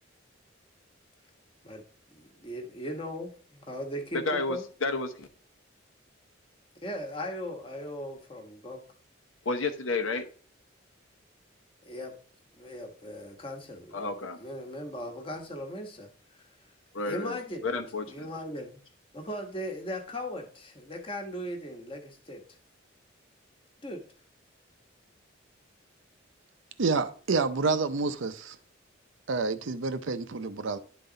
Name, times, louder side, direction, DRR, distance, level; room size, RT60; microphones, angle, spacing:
voice 1, 2.1-4.6 6.8-8.8 11.8-12.1 12.5-16.4 17.0-18.8 19.1-22.4 23.8-24.0, equal, 25° left, 1.2 m, -38 dB
voice 2, 4.3-5.3 9.5-10.2 13.9-14.4 16.9-17.4 17.6-18.3, left 3 dB, 75° left, 0.9 m, -31 dB
voice 3, 26.8-28.6 29.3-30.8, right 4 dB, 70° right, 0.6 m, -28 dB
11.0 x 4.0 x 3.8 m
head